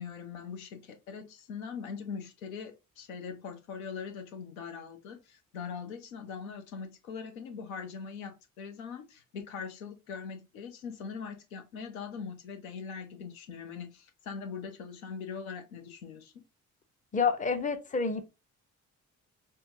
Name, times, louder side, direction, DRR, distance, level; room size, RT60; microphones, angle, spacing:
voice 1, 0.0-16.4, left 6 dB, 85° left, 0.6 m, -41 dB
voice 2, 17.1-18.2, left 5 dB, 20° left, 0.6 m, -28 dB
4.4 x 2.3 x 2.6 m
hypercardioid pair, 45°, 41 cm